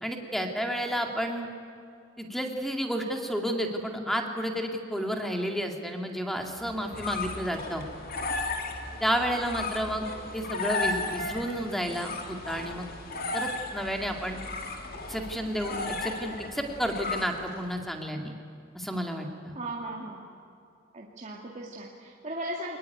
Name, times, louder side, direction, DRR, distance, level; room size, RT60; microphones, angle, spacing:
voice 1, 0.0-1.5 2.2-7.8 9.0-10.0 10.3-12.9 13.3-14.4 15.1-18.3 18.7-19.6, equal, ahead, 3 dB, 2.3 m, -31 dB
sound 1, 6.6-17.7, left 3 dB, 50° left, 2.5 m, -35 dB
voice 2, 19.5-20.3 20.9-22.8, right 1 dB, 35° right, -2 dB, 2.2 m, -37 dB
23.0 x 20.5 x 9.4 m, 2.4 s
head